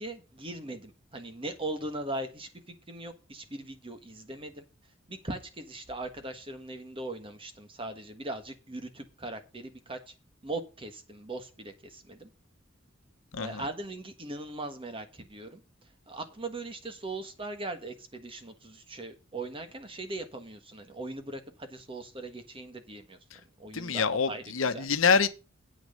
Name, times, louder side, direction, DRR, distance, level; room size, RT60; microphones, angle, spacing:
voice 1, 0.0-2.5 2.9-4.6 5.1-10.1 10.4-12.3 13.4-15.6 16.1-23.2 23.6-24.9, right 2 dB, 25° right, 1.5 m, -39 dB
voice 2, 13.3-13.6 23.3-23.4 23.7-25.3, left 5 dB, 85° left, 0.9 m, -26 dB
8.7 x 6.2 x 6.6 m
head